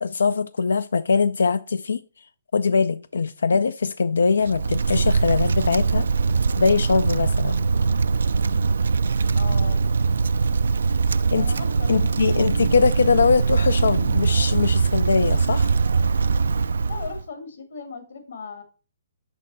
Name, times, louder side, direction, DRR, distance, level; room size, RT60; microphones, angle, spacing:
voice 1, 0.0-2.0 2.5-6.1 6.6-7.6 11.3-11.5 11.9-15.7, left 5 dB, 90° left, 0.3 m, -22 dB
Wind, 4.4-17.2, right 4 dB, 85° right, 0.3 m, -22 dB
voice 2, 9.3-9.9 11.3-12.5 16.9-18.6, left 5 dB, 75° left, 2.1 m, -38 dB
6.3 x 5.4 x 4.0 m
hypercardioid pair, 160°, 0 cm